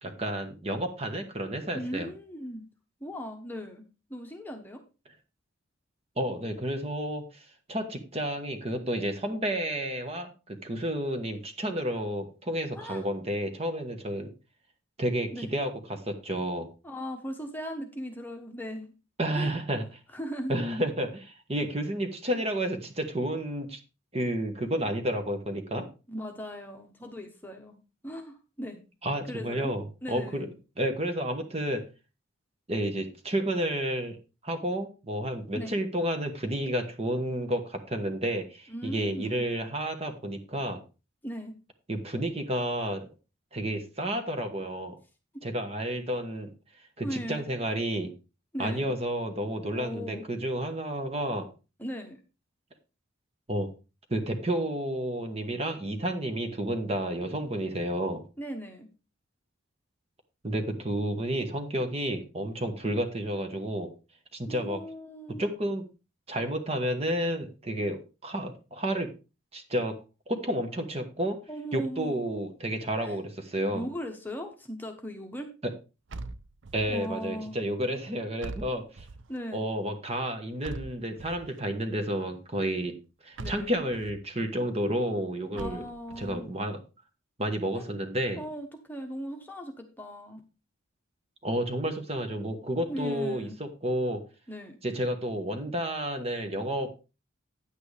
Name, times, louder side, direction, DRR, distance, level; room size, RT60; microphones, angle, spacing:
voice 1, 0.0-2.1 6.2-14.3 15.0-16.7 19.2-19.8 20.5-23.8 24.1-25.9 29.0-30.5 30.8-31.8 32.7-34.2 34.4-40.8 41.9-43.1 43.5-44.9 45.4-46.5 47.0-48.1 48.6-51.5 53.5-53.7 54.1-58.2 60.4-63.9 64.3-64.8 65.4-65.8 66.3-69.1 69.5-70.0 70.3-71.4 71.7-73.8 76.7-79.1 79.5-82.9 83.2-85.8 86.2-86.8 87.4-88.4 91.4-94.2 94.8-96.9, right 1 dB, 30° right, 6 dB, 1.2 m, -31 dB
voice 2, 1.7-2.6 3.0-3.8 4.1-4.8 12.7-13.0 15.3-15.5 16.8-18.9 19.3-19.6 20.1-20.5 26.1-28.8 29.3-29.7 30.0-30.5 35.5-35.7 38.7-39.4 41.2-41.5 47.0-47.5 48.5-48.9 49.7-50.2 51.8-52.2 58.4-58.9 64.5-65.4 71.5-72.2 73.0-73.2 73.7-75.5 76.9-77.6 79.3-79.7 83.4-83.8 85.5-86.5 87.7-87.9 88.4-90.4 92.9-93.6 94.5-94.8, equal, 10° left, 3 dB, 1.1 m, -38 dB
sound 1, 76.1-77.1 78.4-79.4 80.6-81.6 83.4-84.2 85.6-86.4, right 2 dB, 60° right, 0.6 m, -42 dB
9.8 x 8.9 x 3.4 m, 0.31 s
head